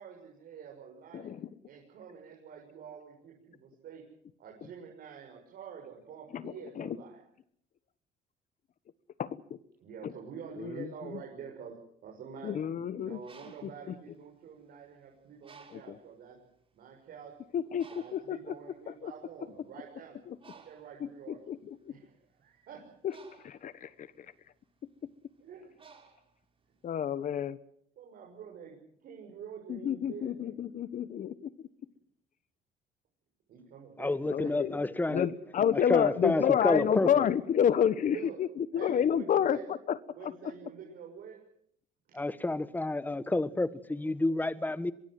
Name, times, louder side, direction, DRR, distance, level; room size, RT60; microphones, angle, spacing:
voice 1, 0.0-1.4 1.6-4.0 4.4-7.2 9.8-12.6 13.0-16.4 16.7-17.4 17.9-20.2 20.5-21.4 21.9-22.8 25.4-25.7 28.0-30.6 33.5-34.8 38.1-38.4 38.7-39.7 40.1-41.4, right 7 dB, 65° right, 6.5 m, -47 dB
voice 2, 6.3-7.0 9.2-9.6 10.0-10.1 10.6-11.2 12.4-13.2 13.6-13.7 15.7-16.0 17.5-18.4 18.9-19.1 20.3-20.4 21.0-21.6 21.8-21.9 23.0-23.1 23.4-24.3 26.8-27.6 29.7-31.5 34.3-34.8 35.1-40.3, left 9 dB, 50° left, 1.2 m, -30 dB
Bird, 13.0-14.9 15.4-16.1 16.8-16.9 17.2-26.9, right 5 dB, 30° right, 6.3 m, -58 dB
voice 3, 34.0-35.3 35.7-37.3 42.1-44.9, left 2 dB, 10° left, 1.4 m, -29 dB
23.5 x 23.0 x 7.7 m
cardioid pair, 110°, 17 cm